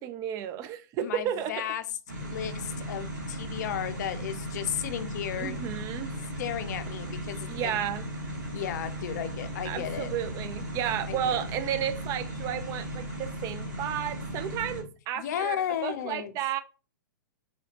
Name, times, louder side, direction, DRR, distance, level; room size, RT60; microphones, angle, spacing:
voice 1, 0.0-1.5 5.4-6.1 7.5-8.1 9.6-16.6, right 10 dB, 30° right, 0.4 m, -32 dB
voice 2, 1.0-1.8 2.2-5.6 6.4-7.8 8.5-10.1 11.1-11.5 15.2-16.3, left 10 dB, 60° left, 0.5 m, -34 dB
sound 1, 2.1-14.8, equal, 70° right, 1.9 m, -36 dB
4.2 x 2.7 x 2.9 m
hypercardioid pair, 115°, 11 cm